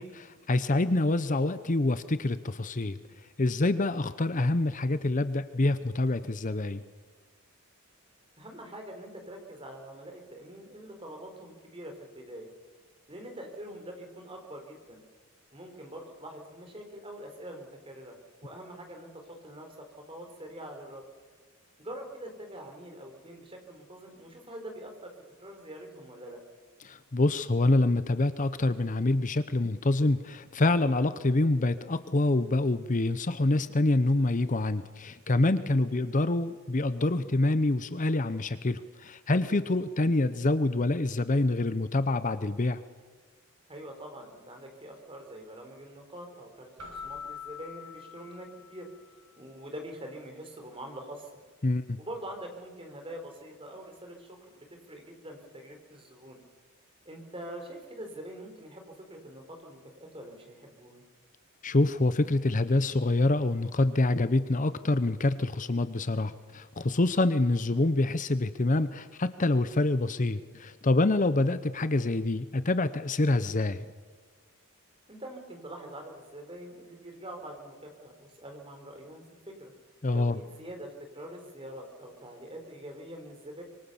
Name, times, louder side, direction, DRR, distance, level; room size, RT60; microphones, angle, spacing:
voice 1, 0.0-3.0 3.4-6.8 26.8-42.8 51.6-52.0 61.6-73.9 80.0-80.4, left 2 dB, 35° left, 13 dB, 0.7 m, -26 dB
voice 2, 8.4-12.5 13.1-15.0 15.5-18.2 18.4-19.7 20.1-21.0 21.8-25.1 25.4-26.4 35.9-36.1 43.7-48.9 49.4-51.3 52.0-56.4 57.0-61.0 75.1-79.7 80.1-83.6, right 1 dB, 25° right, 3 dB, 4.4 m, -44 dB
Keyboard (musical), 46.8-49.2, left 6 dB, 90° right, 6.5 m, -44 dB
25.5 x 23.5 x 7.1 m, 1.5 s
head